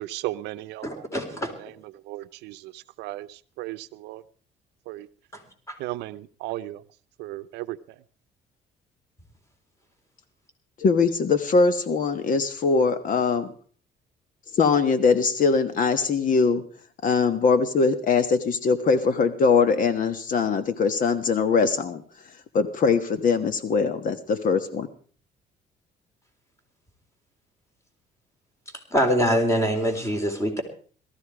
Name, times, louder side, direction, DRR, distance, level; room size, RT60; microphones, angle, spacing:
voice 1, 0.0-1.0 1.6-1.7 2.0-4.2 4.9-5.1 5.8-6.8 7.2-7.8, right 16 dB, 90° right, 13 dB, 0.7 m, -35 dB
voice 2, 0.8-1.5 5.7-5.8 28.9-30.6, equal, 15° left, 5 dB, 4.0 m, -24 dB
voice 3, 10.8-13.5 14.5-16.6 17.0-22.0 22.5-24.9, left 4 dB, 50° left, 11 dB, 1.4 m, -22 dB
18.0 x 13.5 x 4.9 m, 0.43 s
cardioid pair, 110°, 17 cm